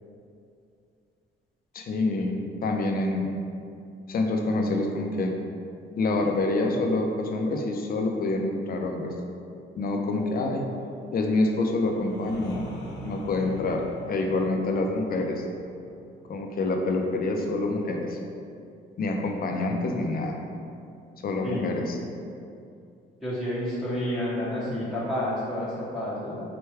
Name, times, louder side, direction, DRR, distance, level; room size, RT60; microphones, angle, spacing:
voice 1, 1.7-3.3 4.1-5.3 6.0-9.1 9.8-10.7 11.1-12.6 13.0-13.8 14.1-15.4 16.3-18.2 19.0-20.4 21.2-22.0, left 2 dB, 50° left, 2 dB, 0.5 m, -26 dB
sound 1, 11.4-17.2, right 1 dB, 85° left, 0.8 m, -44 dB
voice 2, 23.2-26.4, left 1 dB, ahead, -10 dB, 0.8 m, -30 dB
4.5 x 2.2 x 3.3 m, 2.5 s
cardioid pair, 90°, 20 cm